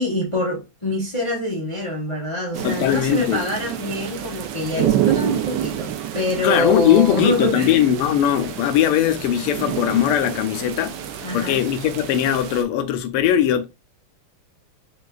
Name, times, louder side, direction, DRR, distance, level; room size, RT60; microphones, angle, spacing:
voice 1, 0.0-7.8 11.2-11.6, left 1 dB, 25° left, 0.7 m, -25 dB
sound 1, 2.5-12.6, right 11 dB, 80° right, 0.9 m, -28 dB
voice 2, 2.6-3.5 6.4-11.0 11.3-13.6, left 10 dB, 85° left, 1.5 m, -20 dB
6.1 x 2.6 x 2.3 m
omnidirectional pair, 2.4 m